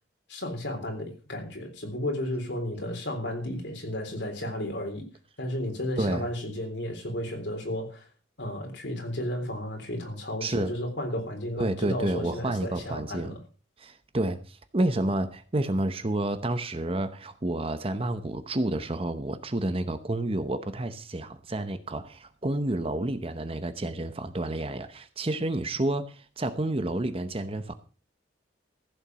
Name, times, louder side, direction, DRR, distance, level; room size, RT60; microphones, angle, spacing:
voice 1, 0.3-5.0 5.4-8.0 8.4-13.3, left 1 dB, 70° left, 3 dB, 3.7 m, -33 dB
voice 2, 6.0-6.3 10.4-10.7 11.6-13.4 13.8-27.7, right 1 dB, 30° right, 11 dB, 0.8 m, -30 dB
15.0 x 7.2 x 6.2 m, 0.36 s
head